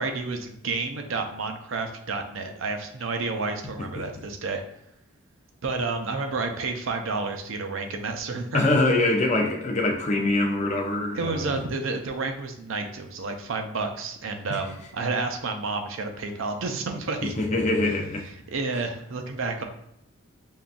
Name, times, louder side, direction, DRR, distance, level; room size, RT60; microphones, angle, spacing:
voice 1, 0.0-4.6 5.6-8.7 11.2-17.3 18.5-19.6, right 3 dB, 70° right, 4 dB, 0.5 m, -30 dB
voice 2, 8.5-11.5 17.2-18.2, left 2 dB, 35° left, 1 dB, 0.5 m, -24 dB
5.4 x 2.2 x 2.5 m, 0.78 s
head